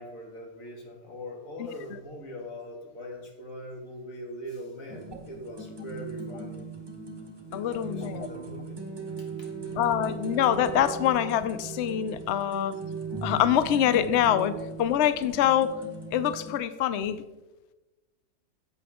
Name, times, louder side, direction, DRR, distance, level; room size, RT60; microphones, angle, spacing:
voice 1, 0.0-6.7 7.5-8.8 9.2-9.8, equal, 50° left, 1 dB, 2.2 m, -41 dB
sound 1, 4.9-16.6, right 4 dB, 20° right, 0.9 m, -39 dB
voice 2, 7.5-8.3 9.8-12.7 13.2-15.7 16.1-17.2, left 10 dB, 85° left, 13 dB, 0.6 m, -25 dB
11.0 x 8.1 x 3.6 m, 1.1 s
omnidirectional pair, 1.8 m